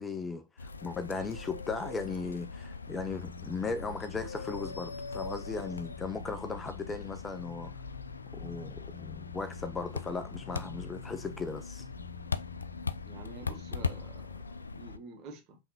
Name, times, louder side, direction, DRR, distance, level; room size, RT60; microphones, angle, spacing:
voice 1, 0.0-7.7 8.3-11.9, left 4 dB, 15° left, 0.5 m, -37 dB
sound 1, 0.6-15.0, left 4 dB, 75° left, 0.3 m, -40 dB
sound 2, 3.1-14.4, left 6 dB, 40° left, 1.0 m, -51 dB
voice 2, 13.0-15.6, right 3 dB, 40° right, 1.3 m, -48 dB
5.3 x 3.5 x 2.8 m
figure-of-eight pair, 90°, 0 cm